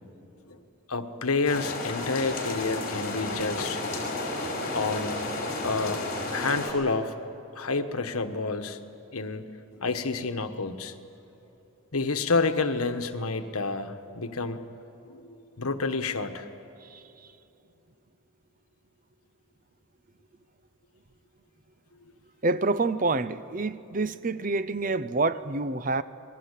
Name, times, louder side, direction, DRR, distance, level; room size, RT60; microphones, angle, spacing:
voice 1, 0.9-3.8 4.7-5.3 5.6-6.0 6.3-7.1 7.5-8.8 9.1-9.5 9.8-10.9 11.9-14.6 15.0-15.2 15.6-16.4, left 3 dB, 80° left, 1.3 m, -29 dB
sound 1, 1.5-6.7, left 2 dB, 40° left, 5.1 m, -32 dB
voice 2, 22.4-26.0, right 3 dB, 35° right, 0.6 m, -27 dB
28.0 x 20.5 x 8.3 m
head